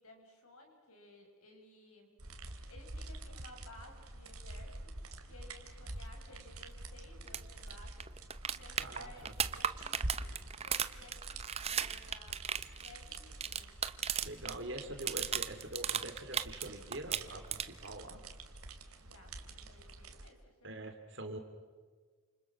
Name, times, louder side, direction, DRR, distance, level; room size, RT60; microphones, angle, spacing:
voice 1, 0.0-2.2 2.4-8.0 8.5-12.5 12.8-13.8 19.0-20.9, left 2 dB, 85° left, 3 dB, 6.7 m, -58 dB
sound 1, 2.2-20.3, right 2 dB, 85° right, 2.7 m, -47 dB
sound 2, 7.3-7.4 7.7-7.8 8.0-14.5 14.8-16.7 16.9-17.9 19.9-20.0, right 8 dB, 30° right, 0.8 m, -35 dB
voice 2, 8.8-9.3 14.2-18.2 20.6-21.4, right 1 dB, 55° right, 6 dB, 3.4 m, -44 dB
29.5 x 28.0 x 6.4 m, 1.5 s
head